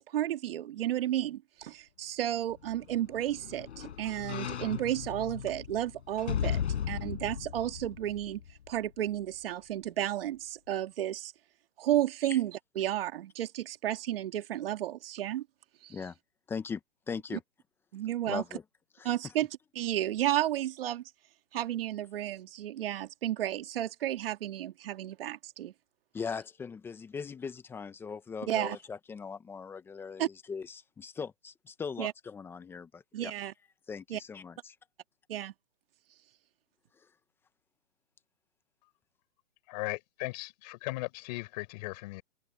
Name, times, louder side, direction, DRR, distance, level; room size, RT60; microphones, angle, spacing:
voice 1, 0.0-8.4 8.7-11.3 11.8-15.4 15.8-15.9 17.9-18.4 19.0-19.5 19.8-21.0 21.5-25.7 28.5-28.8 30.2-30.3 32.0-32.1 33.1-33.5 34.1-34.2 35.3-35.5, right 12 dB, 50° right, 2.3 m, -32 dB
sound 1, 2.6-8.9 9.3-9.4, left 9 dB, 65° left, 5.9 m, -37 dB
voice 2, 16.5-16.8 17.1-17.4 18.3-18.6 19.0-19.3 26.1-33.3 33.9-34.8, left 5 dB, 5° left, 0.8 m, -40 dB
voice 3, 39.7-42.2, left 23 dB, 35° left, 4.8 m, -37 dB
hypercardioid pair, 150°, 37 cm